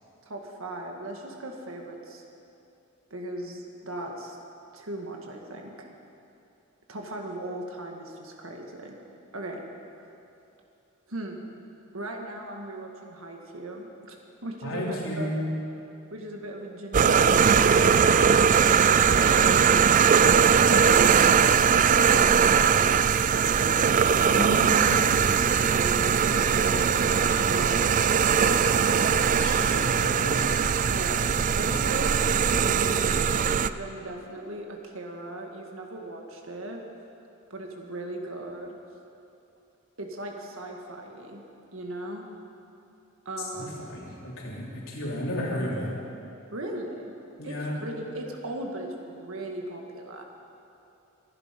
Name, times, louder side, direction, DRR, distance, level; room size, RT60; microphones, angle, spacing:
voice 1, 0.3-2.2 3.1-4.4 4.7-5.9 6.9-9.0 9.3-9.6 11.1-11.4 11.9-14.2 14.4-15.3 16.1-17.4 19.0-19.8 20.5-23.0 24.3-28.0 30.9-31.2 31.6-36.8 37.5-38.7 40.0-41.4 41.7-42.2 43.3-44.0 46.5-47.1 47.4-47.6 47.8-50.2, right 1 dB, 75° right, 1 dB, 1.9 m, -37 dB
voice 2, 14.6-15.5 24.3-24.8 29.4-30.5 43.5-45.9 47.4-47.7, equal, 75° left, -4 dB, 3.7 m, -32 dB
sound 1, 16.9-33.7, right 7 dB, 40° right, 0.4 m, -21 dB
23.0 x 11.0 x 5.3 m, 2.8 s
head